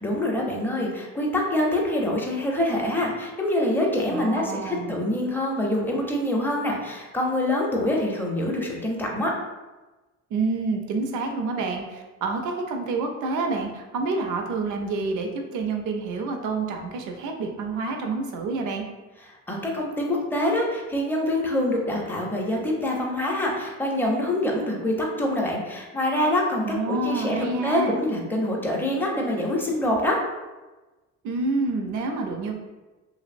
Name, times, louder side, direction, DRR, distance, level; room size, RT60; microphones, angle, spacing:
voice 1, 0.0-9.4 19.5-30.2, left 1 dB, 5° left, -2 dB, 0.5 m, -25 dB
voice 2, 4.1-5.0 10.3-18.8 26.6-28.0 31.2-32.6, right 3 dB, 80° right, 3 dB, 0.5 m, -28 dB
2.8 x 2.0 x 2.5 m, 1.2 s
cardioid pair, 90°, 30 cm